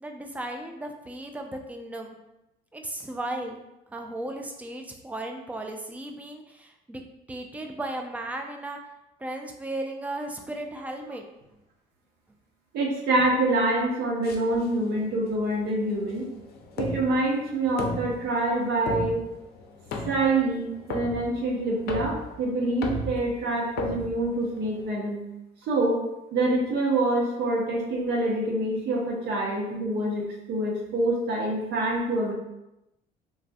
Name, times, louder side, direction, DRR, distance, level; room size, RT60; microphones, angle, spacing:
voice 1, 0.0-2.2 2.7-3.6 3.9-7.0 7.3-8.8 9.2-11.2, right 1 dB, 10° right, 3 dB, 0.3 m, -35 dB
voice 2, 12.7-16.3 16.8-19.2 20.1-25.2 25.7-26.0 26.3-32.3, right 2 dB, 75° right, -1 dB, 0.7 m, -26 dB
sound 1, 14.2-24.9, left 2 dB, 65° left, 0.5 m, -36 dB
3.3 x 2.5 x 2.2 m, 0.90 s
cardioid pair, 110°, 17 cm